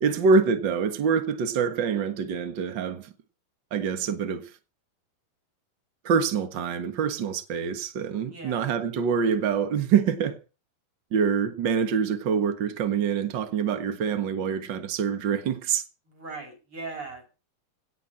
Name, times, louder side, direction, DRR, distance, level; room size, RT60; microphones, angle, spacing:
voice 1, 0.0-3.1 3.7-4.5 6.0-10.4 11.1-15.8, right 6 dB, 75° right, 1.0 m, -25 dB
voice 2, 8.3-8.6 16.1-17.3, right 3 dB, 35° right, 7.7 m, -39 dB
17.5 x 7.2 x 8.6 m
omnidirectional pair, 4.5 m